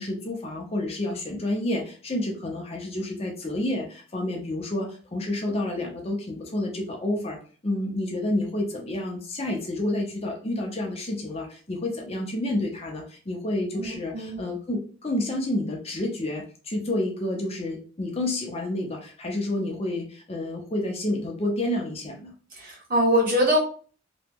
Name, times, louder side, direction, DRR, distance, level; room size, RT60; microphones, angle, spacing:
voice 1, 0.0-7.4 7.6-22.3, left 1 dB, 30° left, 1 dB, 0.6 m, -29 dB
voice 2, 22.5-23.6, equal, 45° right, -4 dB, 1.5 m, -22 dB
2.9 x 2.2 x 3.5 m, 0.40 s
head